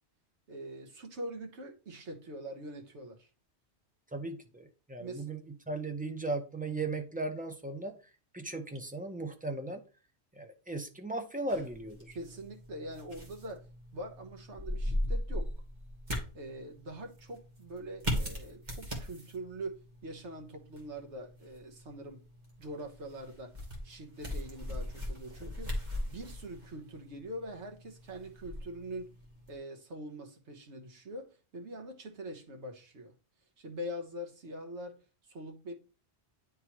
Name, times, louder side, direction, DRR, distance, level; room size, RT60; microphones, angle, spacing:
voice 1, 0.5-3.3 5.0-5.3 12.1-13.7 13.9-15.5 16.3-22.2 22.6-23.5 23.8-25.7 26.1-29.1 29.5-33.1 33.6-35.0 35.2-35.7, right 1 dB, 80° right, 1.4 m, -43 dB
voice 2, 4.1-5.4 5.7-7.9 8.3-9.8 10.4-12.2, right 2 dB, 10° right, 0.6 m, -37 dB
sound 1, 11.5-29.6, equal, 40° right, 1.7 m, -39 dB
9.6 x 3.7 x 2.9 m
omnidirectional pair, 1.1 m